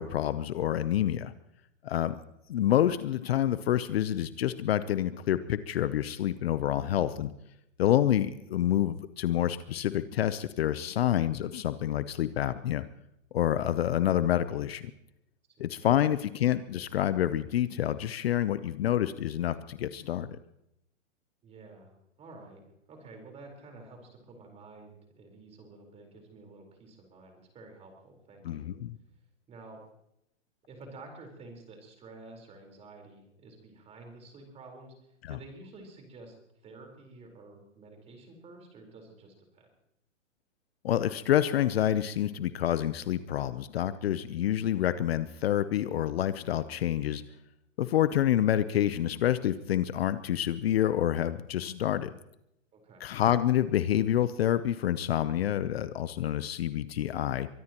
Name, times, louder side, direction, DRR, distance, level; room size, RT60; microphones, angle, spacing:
voice 1, 0.0-1.3 1.8-2.2 2.5-7.3 7.8-12.8 13.3-14.9 15.6-20.3 28.4-29.0 35.2-35.4 40.8-47.2 47.8-52.1 53.0-57.5, left 11 dB, 50° left, 13 dB, 0.8 m, -28 dB
voice 2, 15.6-15.9 21.4-22.6 22.9-28.7 29.5-29.8 30.7-34.9 35.3-36.3 36.6-39.7 52.7-53.1, right 3 dB, 15° right, 3 dB, 4.3 m, -50 dB
23.5 x 20.5 x 3.0 m, 0.81 s
hypercardioid pair, 145°, 38 cm